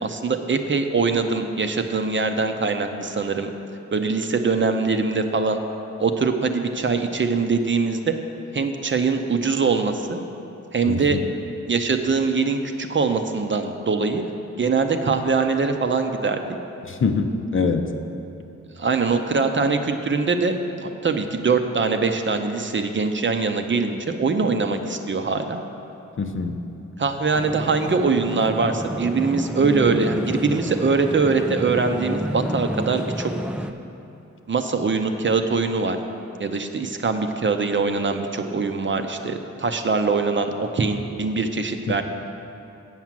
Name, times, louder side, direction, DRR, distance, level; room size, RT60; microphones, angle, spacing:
voice 1, 0.0-3.5 3.9-5.6 6.0-8.2 8.5-10.2 10.7-11.2 11.7-14.2 14.6-16.4 18.8-25.6 27.0-33.3 34.5-36.0 36.4-42.0, right 4 dB, 40° right, 6 dB, 0.6 m, -22 dB
voice 2, 10.9-11.3 16.9-17.9 26.2-26.6, left 4 dB, 45° left, 6 dB, 0.6 m, -24 dB
sound 1, 27.3-33.7, right 1 dB, 5° right, 0.3 m, -29 dB
8.1 x 6.0 x 7.4 m, 2.9 s
wide cardioid pair, 90°, 29 cm